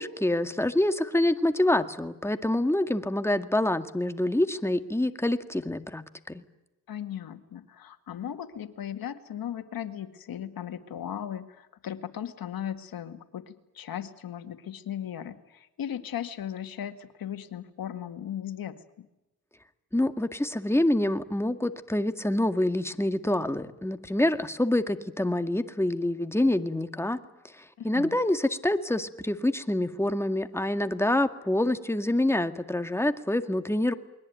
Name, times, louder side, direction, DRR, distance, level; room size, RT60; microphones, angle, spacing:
voice 1, 0.0-6.4 19.9-27.2 27.6-33.9, left 1 dB, 5° left, 8 dB, 2.0 m, -26 dB
voice 2, 6.9-19.1 27.8-28.2, left 10 dB, 75° left, 8 dB, 2.0 m, -37 dB
28.5 x 21.5 x 9.3 m, 0.98 s
cardioid pair, 60°, 35 cm